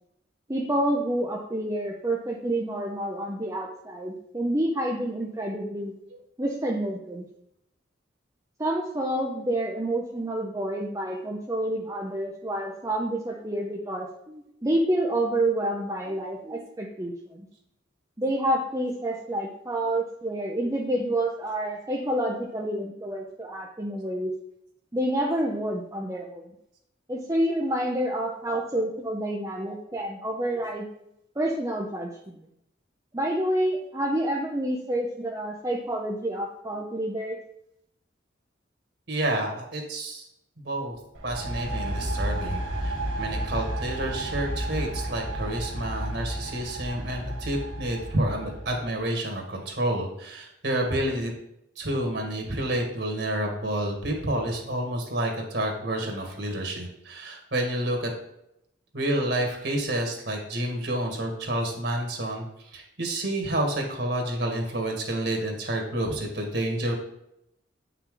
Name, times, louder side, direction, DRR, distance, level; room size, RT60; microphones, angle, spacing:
voice 1, 0.5-5.9 6.4-7.2 8.6-17.5 18.2-24.3 24.9-26.5 27.1-30.9 31.4-32.4 33.1-37.4, right 1 dB, 15° right, -2 dB, 0.7 m, -28 dB
voice 2, 39.1-40.2 40.6-40.9 41.2-51.3 51.8-58.1 58.9-62.4 62.7-66.9, right 1 dB, 60° right, 1 dB, 2.0 m, -29 dB
sound 1, 41.1-48.9, right 1 dB, 85° right, 1.7 m, -32 dB
8.9 x 5.8 x 3.8 m, 0.80 s
head